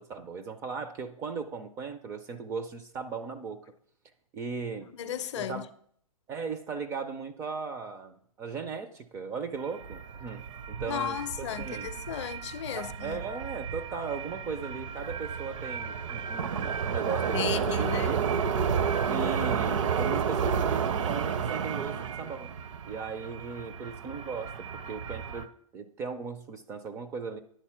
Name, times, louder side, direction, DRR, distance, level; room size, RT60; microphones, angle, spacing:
voice 1, 0.0-3.7 4.3-4.9 5.4-5.6 6.3-11.9 12.7-18.4 19.1-22.5 22.9-27.4, right 5 dB, 15° right, 0.3 m, -37 dB
voice 2, 4.8-5.7 10.9-13.2 17.3-18.3 19.6-19.8, left 10 dB, 50° left, 0.6 m, -35 dB
sound 1, 9.6-25.4, right 6 dB, 55° right, 0.6 m, -31 dB
10.0 x 4.1 x 5.6 m
figure-of-eight pair, 125°, 19 cm